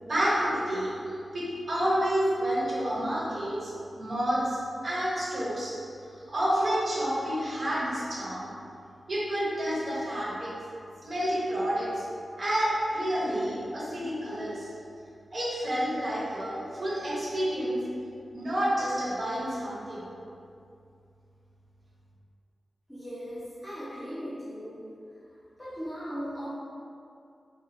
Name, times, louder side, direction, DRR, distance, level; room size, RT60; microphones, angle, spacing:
voice 1, 0.0-3.7 4.0-4.6 4.8-5.7 6.3-8.5 9.1-10.5 11.0-12.0 12.4-14.7 15.3-17.8 18.3-20.1, equal, 45° right, -8 dB, 0.9 m, -29 dB
voice 2, 22.9-24.8 25.6-26.5, equal, 10° left, -13 dB, 0.9 m, -38 dB
4.1 x 2.4 x 2.7 m, 2.5 s
wide cardioid pair, 125°, 0 cm